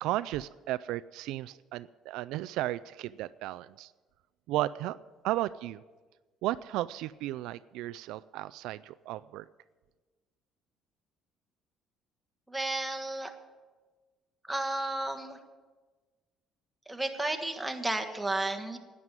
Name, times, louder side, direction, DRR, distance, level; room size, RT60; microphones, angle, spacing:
voice 1, 0.0-3.9 4.5-5.0 5.2-5.8 6.4-9.5, right 15 dB, 80° right, 15 dB, 0.3 m, -34 dB
voice 2, 12.5-13.3 14.5-15.4 16.9-18.8, right 2 dB, 5° right, 5 dB, 1.4 m, -32 dB
11.0 x 9.7 x 9.0 m, 1.3 s
cardioid pair, 125°, 0 cm